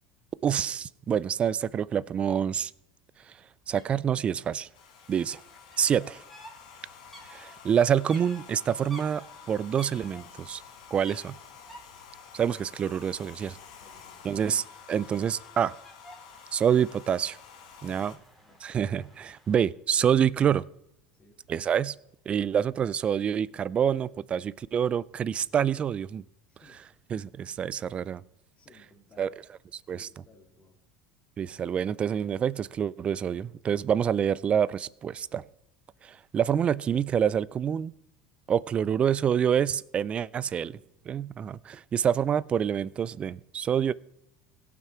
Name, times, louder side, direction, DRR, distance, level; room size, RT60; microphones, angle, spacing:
voice 1, 0.4-2.7 3.7-4.7 5.1-5.4 5.8-6.2 7.3-10.6 10.9-11.4 12.3-13.6 14.2-15.7 16.5-17.4 17.8-18.1 18.6-20.7 21.5-21.9 22.3-26.2 27.1-28.2 29.2-29.3 29.9-30.1 31.4-35.5 36.0-37.9 38.5-40.7 41.1-43.9, right 8 dB, 30° right, 0.4 m, -27 dB
sound 1, 3.7-3.9 4.1-19.7, equal, ahead, 2.6 m, -53 dB
Domestic sounds home sounds, 4.7-18.2, left 7 dB, 85° left, 2.0 m, -50 dB
voice 2, 13.8-14.4 17.8-18.6 21.1-21.4 26.5-26.9 27.1-27.2 28.6-29.4 29.9-30.8 40.3-41.1, left 3 dB, 30° left, 3.0 m, -59 dB
17.0 x 6.0 x 4.4 m
supercardioid pair, 110°, 4 cm